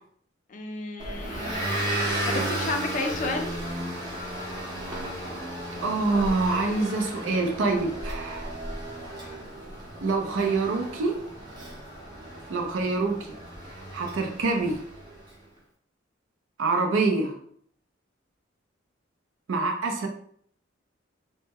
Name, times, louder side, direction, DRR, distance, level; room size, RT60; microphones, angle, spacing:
voice 1, 0.5-3.6, left 3 dB, 40° left, 4 dB, 0.4 m, -33 dB
Motor vehicle (road) / Engine, 1.0-15.2, right 1 dB, 25° right, 0.6 m, -34 dB
voice 2, 5.8-8.6 10.0-11.2 12.5-13.3 13.9-14.8 16.6-17.3 19.5-20.1, right 3 dB, 75° right, 3 dB, 0.4 m, -26 dB
2.1 x 2.1 x 3.4 m, 0.62 s
head